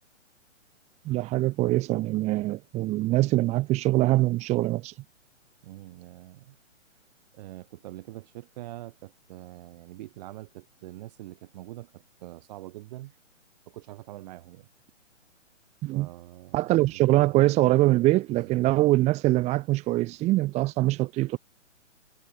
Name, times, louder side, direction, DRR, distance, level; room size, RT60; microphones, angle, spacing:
voice 1, 1.1-4.9 15.8-16.1 16.5-21.4, right 18 dB, 15° right, 3.8 m, -23 dB
voice 2, 5.6-6.6 7.3-13.1 13.7-14.7 15.9-16.6 16.9-17.4 18.3-18.6, right 16 dB, 35° right, 7.8 m, -44 dB
hypercardioid pair, 160°, 38 cm